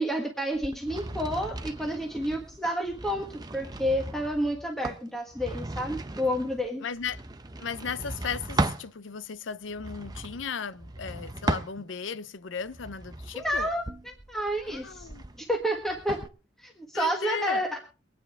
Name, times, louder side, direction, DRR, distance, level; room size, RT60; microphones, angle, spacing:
voice 1, 0.0-3.3 3.5-6.8 13.3-13.8 14.3-15.1 15.4-16.2 16.6-17.8, equal, ahead, 1.5 m, -29 dB
sound 1, 0.5-8.9 9.7-12.2 12.6-16.3, right 2 dB, 20° right, 0.7 m, -36 dB
voice 2, 6.8-7.2 7.6-13.7 14.7-15.2 16.9-17.6, left 6 dB, 85° left, 0.6 m, -36 dB
23.0 x 9.5 x 3.6 m
head